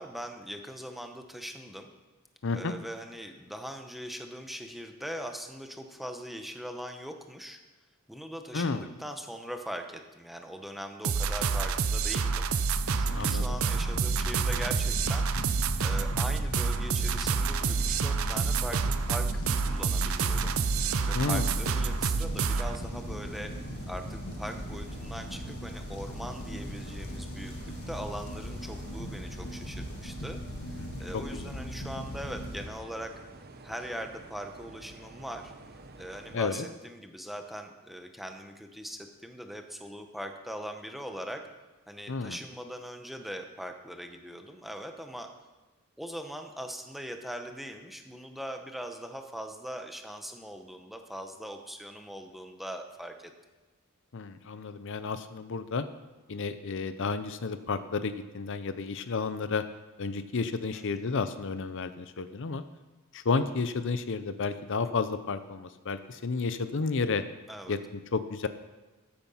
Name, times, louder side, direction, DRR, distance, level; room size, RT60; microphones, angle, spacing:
voice 1, 0.0-1.9 2.5-7.6 8.1-12.5 13.0-15.3 15.8-20.6 21.1-23.5 23.9-27.5 27.9-30.4 31.0-33.1 33.6-35.5 36.0-41.4 41.9-45.3 46.0-53.3 60.7-61.1 67.5-67.8, equal, ahead, 5 dB, 0.9 m, -41 dB
voice 2, 2.4-2.7 8.5-8.9 13.1-13.4 21.1-21.5 30.6-30.9 31.3-31.5 36.3-36.7 42.1-42.4 54.1-55.9 56.3-59.6 60.0-62.6 63.1-67.2 67.7-68.5, left 4 dB, 60° left, 11 dB, 0.6 m, -31 dB
sound 1, 11.0-22.8, right 5 dB, 70° right, 0.6 m, -28 dB
sound 2, 12.7-32.7, equal, 85° left, 1.5 m, -39 dB
sound 3, 17.4-36.4, right 2 dB, 45° right, 1.0 m, -49 dB
14.0 x 8.8 x 5.6 m, 1.2 s
head